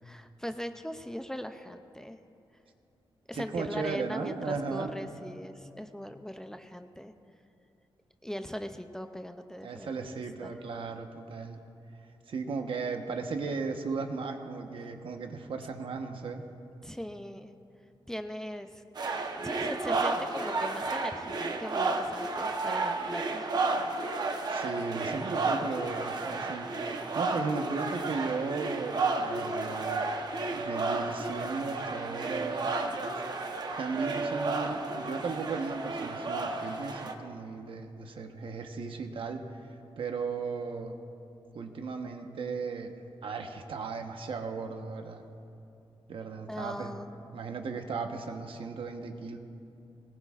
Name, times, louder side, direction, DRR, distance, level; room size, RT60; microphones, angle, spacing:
voice 1, 0.0-2.2 3.3-7.1 8.2-10.6 16.8-17.5 18.1-18.8 19.4-23.7 24.4-24.6 46.5-47.2, equal, 5° left, 7 dB, 0.4 m, -40 dB
voice 2, 3.3-4.9 9.6-11.6 12.3-16.4 24.5-30.1 30.5-32.7 33.1-33.2 33.8-39.4 40.0-41.0 41.5-42.9 43.2-45.2 46.1-46.9 47.3-49.4, right 4 dB, 65° right, 5 dB, 1.0 m, -36 dB
sound 1, 19.0-37.1, right 3 dB, 45° right, 0.9 m, -32 dB
21.0 x 19.0 x 2.4 m, 2.6 s
wide cardioid pair, 170°, 10 cm